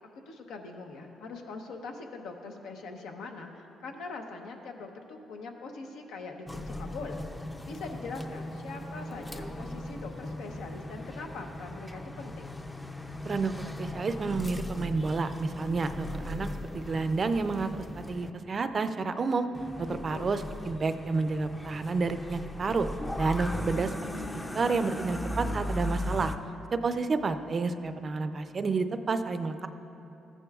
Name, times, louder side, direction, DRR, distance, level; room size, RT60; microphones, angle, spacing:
voice 1, 0.3-7.3 7.7-12.6 19.8-20.4, left 3 dB, 85° left, 3 dB, 0.8 m, -42 dB
sound 1, 6.5-18.3 19.5-26.4, left 1 dB, 15° left, 0.5 m, -38 dB
voice 2, 13.2-16.5 16.7-17.7 17.9-19.5 19.9-22.9 23.2-24.2 24.5-26.3 26.7-29.7, right 4 dB, 40° right, 10 dB, 0.4 m, -30 dB
14.0 x 9.8 x 2.4 m, 2.9 s
cardioid pair, 90°, 0 cm